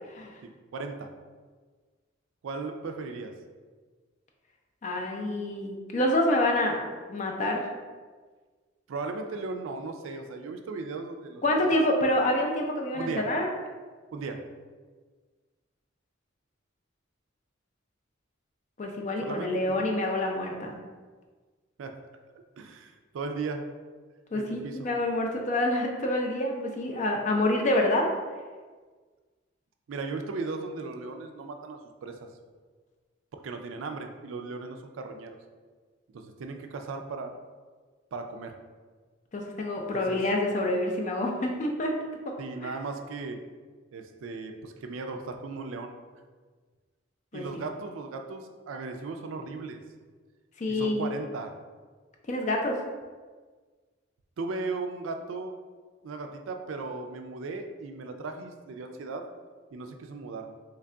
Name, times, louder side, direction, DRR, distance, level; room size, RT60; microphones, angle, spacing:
voice 1, 0.1-0.4 4.8-7.7 11.4-13.5 18.8-20.7 24.3-28.1 39.3-41.9 42.3-42.4 42.6-42.7 47.3-47.6 50.6-51.1 52.3-52.8, left 1 dB, 40° left, 1 dB, 0.4 m, -27 dB
voice 2, 0.7-1.1 2.4-3.3 8.9-11.8 12.9-13.3 14.1-14.4 19.2-19.8 21.8-21.9 22.6-23.7 24.3-24.8 29.9-32.2 33.4-35.4 36.1-37.3 38.1-38.5 39.8-40.2 42.4-43.4 43.9-45.9 47.3-49.8 50.7-51.5 54.4-55.5 56.0-59.3 59.7-60.5, right 3 dB, 80° right, 5 dB, 0.4 m, -37 dB
3.2 x 2.3 x 3.7 m, 1.4 s
head